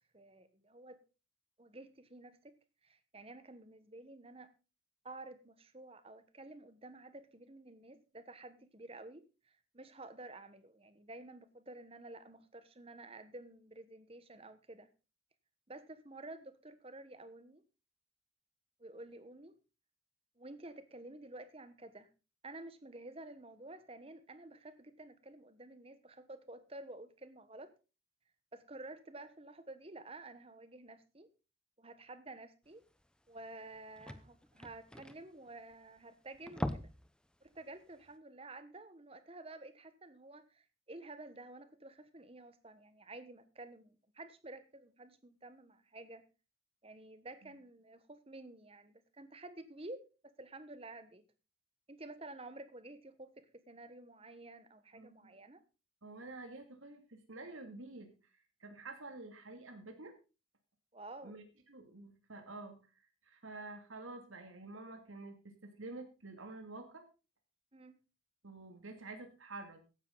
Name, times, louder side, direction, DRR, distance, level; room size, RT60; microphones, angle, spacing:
voice 1, 0.1-1.0 1.6-2.5 2.8-4.5 5.0-14.9 15.7-17.6 18.8-19.6 20.4-22.1 22.4-27.7 28.5-31.3 31.8-32.8 33.3-36.9 37.4-46.2 46.8-51.2 51.9-55.6 60.9-61.3 67.7-68.0, right 2 dB, 30° right, 12 dB, 1.2 m, -51 dB
sound 1, 33.0-33.1 33.4-33.5 33.7-36.0 36.3-37.1 37.5-37.6 38.1-38.2, equal, 5° left, 0.7 m, -41 dB
voice 2, 56.0-58.1 58.6-60.1 61.2-62.8 63.2-67.0 68.4-69.8, right 2 dB, 85° right, 5 dB, 2.7 m, -49 dB
15.0 x 10.5 x 4.0 m, 0.32 s
head